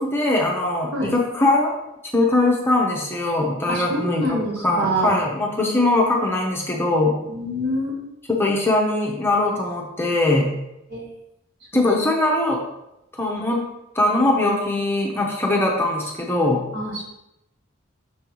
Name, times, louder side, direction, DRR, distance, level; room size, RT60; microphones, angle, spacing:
voice 1, 0.0-1.7 2.1-7.1 8.3-10.5 11.7-12.6 13.1-13.6 13.9-16.6, left 2 dB, 10° left, -1 dB, 0.7 m, -21 dB
voice 2, 3.7-5.2 7.2-8.1 10.9-11.1 16.7-17.0, equal, 55° right, -4 dB, 1.8 m, -26 dB
6.1 x 5.3 x 3.0 m, 0.87 s
head